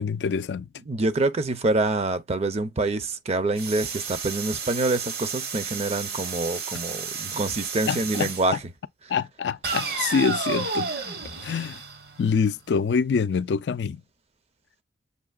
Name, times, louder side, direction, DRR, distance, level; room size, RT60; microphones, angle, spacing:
voice 1, 0.0-0.7 7.9-8.3 9.1-10.9 11.4-11.8 12.2-14.0, left 6 dB, 70° left, 0.4 m, -25 dB
voice 2, 0.9-8.6, right 2 dB, 35° right, 0.6 m, -26 dB
sound 1, 3.6-8.5 9.6-12.6, right 5 dB, 60° right, 1.0 m, -32 dB
6.6 x 2.8 x 2.3 m
head